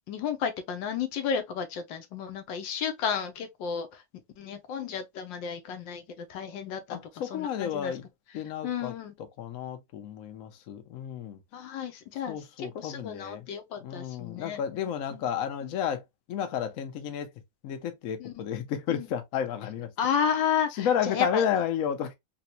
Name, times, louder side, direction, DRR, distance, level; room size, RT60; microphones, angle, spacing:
voice 1, 0.1-4.0 4.4-7.0 7.3-7.9 8.6-9.1 11.5-14.6 15.1-15.3 18.2-18.3 18.9-19.1 20.0-21.4, left 7 dB, 80° left, 1.3 m, -32 dB
voice 2, 6.9-8.1 8.3-8.9 9.4-11.4 12.3-13.5 13.8-17.3 17.6-19.9 20.7-22.2, left 8 dB, 60° left, 0.9 m, -32 dB
4.2 x 2.2 x 2.7 m
omnidirectional pair, 2.1 m